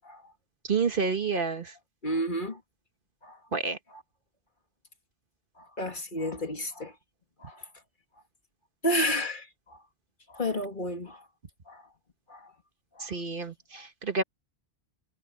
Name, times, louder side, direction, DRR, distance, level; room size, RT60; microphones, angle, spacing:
voice 1, 0.7-1.7 3.5-3.8 13.0-14.2, right 4 dB, 55° right, 1.5 m, -29 dB
voice 2, 2.0-2.6 3.2-3.4 3.9-4.0 5.6-6.9 7.4-7.7 8.8-9.8 10.3-11.2 11.7-11.8 12.3-12.5 13.0-13.1 13.7-13.9, equal, 50° left, 2.3 m, -32 dB
omnidirectional pair, 1.1 m